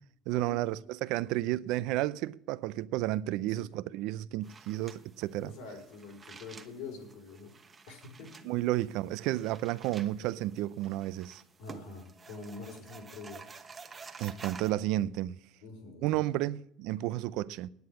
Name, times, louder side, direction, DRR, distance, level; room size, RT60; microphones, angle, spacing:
voice 1, 0.3-5.5 8.4-11.4 14.2-15.4 16.0-17.7, right 15 dB, 70° right, 0.5 m, -32 dB
sound 1, 4.4-14.7, right 5 dB, 25° right, 1.1 m, -51 dB
voice 2, 5.4-7.6 7.9-8.3 11.6-13.5 15.6-16.2, left 3 dB, 80° left, 4.2 m, -45 dB
9.5 x 8.6 x 9.4 m
cardioid pair, 125°, 0 cm